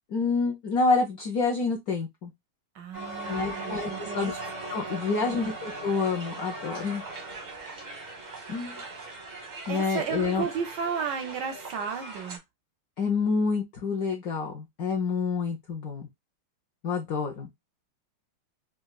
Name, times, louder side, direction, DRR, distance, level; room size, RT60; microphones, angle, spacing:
voice 1, 0.1-2.3 3.3-4.4 4.7-7.0 8.5-8.8 9.7-10.5 13.0-16.1 16.8-17.5, left 4 dB, 70° left, 0.8 m, -28 dB
voice 2, 2.7-4.3 4.9-5.4 9.7-12.4, right 6 dB, 75° right, 1.0 m, -34 dB
Crowd, 2.9-12.4, right 2 dB, 45° right, 0.6 m, -39 dB
4.1 x 2.3 x 2.2 m
omnidirectional pair, 2.3 m